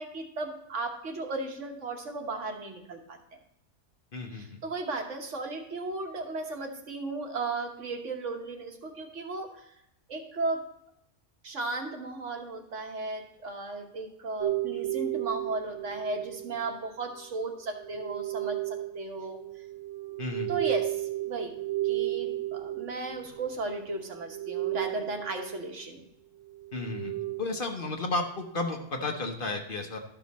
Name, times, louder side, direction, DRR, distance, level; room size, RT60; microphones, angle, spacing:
voice 1, 0.0-3.2 4.3-9.7 10.1-10.6 11.4-19.4 20.5-21.5 21.8-26.0, right 3 dB, 70° right, 3 dB, 1.5 m, -35 dB
voice 2, 4.1-4.6 20.2-20.5 26.7-30.0, left 2 dB, 45° left, 3 dB, 1.1 m, -33 dB
sound 1, 14.4-16.8 17.8-23.8 24.1-25.6 26.5-27.6, right 16 dB, 90° right, 1.2 m, -34 dB
12.5 x 6.0 x 4.1 m, 0.80 s
omnidirectional pair, 1.3 m